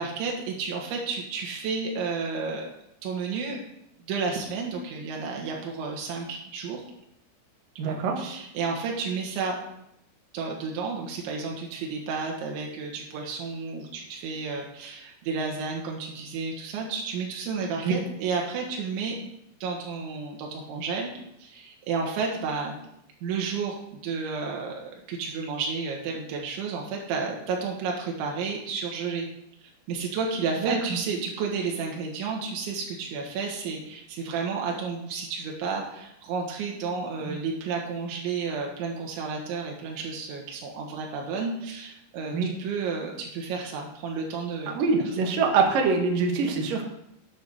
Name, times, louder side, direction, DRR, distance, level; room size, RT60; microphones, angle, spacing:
voice 1, 0.0-2.7 3.0-3.6 4.1-6.8 7.8-9.6 10.3-19.2 19.6-21.1 21.4-22.7 23.2-29.3 29.9-44.9, right 5 dB, 90° right, 0 dB, 3.8 m, -31 dB
voice 2, 7.8-8.2 17.8-17.9 30.6-30.8 37.2-37.4 42.3-42.5 44.7-46.8, right 4 dB, 60° right, 1 dB, 2.9 m, -24 dB
9.9 x 8.0 x 6.6 m, 0.80 s
omnidirectional pair, 5.2 m